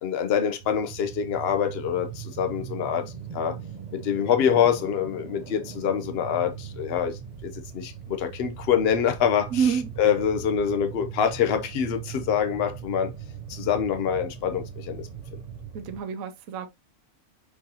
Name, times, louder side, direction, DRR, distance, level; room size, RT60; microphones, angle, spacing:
voice 1, 0.0-3.6 3.9-9.5 10.0-13.1 13.5-15.1, left 8 dB, 55° left, 0.9 m, -25 dB
sound 1, 0.6-16.0, right 8 dB, 45° right, 0.6 m, -40 dB
voice 2, 9.5-9.9 15.7-16.7, right 7 dB, 75° right, 1.1 m, -27 dB
4.7 x 3.9 x 2.8 m
omnidirectional pair, 1.5 m